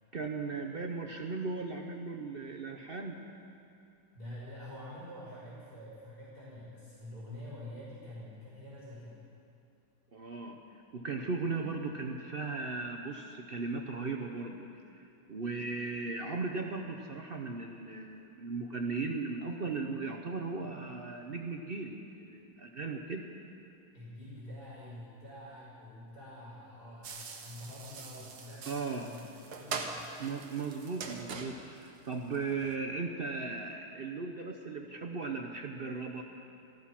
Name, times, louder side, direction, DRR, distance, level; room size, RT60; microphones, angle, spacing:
voice 1, 0.1-3.2 10.1-10.6 10.9-14.7 14.9-15.0 15.3-23.2 28.7-29.1 30.2-36.2, right 4 dB, 45° right, 3 dB, 0.8 m, -37 dB
voice 2, 4.1-9.2 23.9-29.2 29.6-30.1, left 1 dB, 85° left, -9 dB, 5.5 m, -47 dB
sound 1, 27.0-32.8, right 5 dB, 85° right, 1.7 m, -43 dB
14.5 x 14.0 x 5.9 m, 2.6 s
omnidirectional pair, 1.6 m